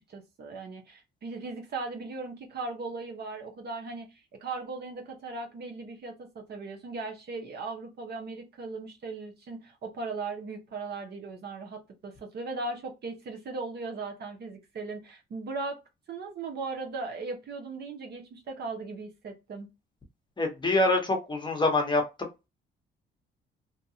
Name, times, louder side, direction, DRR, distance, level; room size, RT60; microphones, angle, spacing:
voice 1, 0.0-15.8 16.1-19.7, right 3 dB, 55° right, 0.8 m, -38 dB
voice 2, 20.4-22.0, left 2 dB, 25° left, 1.0 m, -25 dB
2.8 x 2.3 x 2.7 m
cardioid pair, 90°, 20 cm